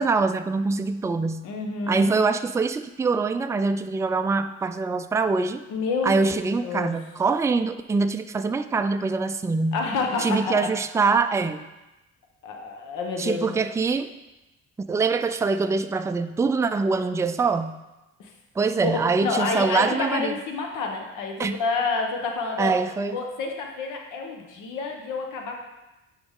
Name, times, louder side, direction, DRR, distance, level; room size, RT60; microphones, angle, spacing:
voice 1, 0.0-1.5 1.9-5.6 6.0-9.8 10.2-11.7 13.2-14.1 14.9-17.8 18.6-20.3 21.4-21.6 22.6-23.2, right 4 dB, 10° right, 9 dB, 0.3 m, -24 dB
voice 2, 1.4-2.1 5.7-6.3 6.6-6.9 9.7-10.6 12.4-13.6 18.2-18.3 18.8-18.9 19.2-22.8 23.1-25.6, left 4 dB, 90° left, 2 dB, 1.1 m, -28 dB
9.9 x 4.0 x 3.6 m, 1.0 s
cardioid pair, 90°, 30 cm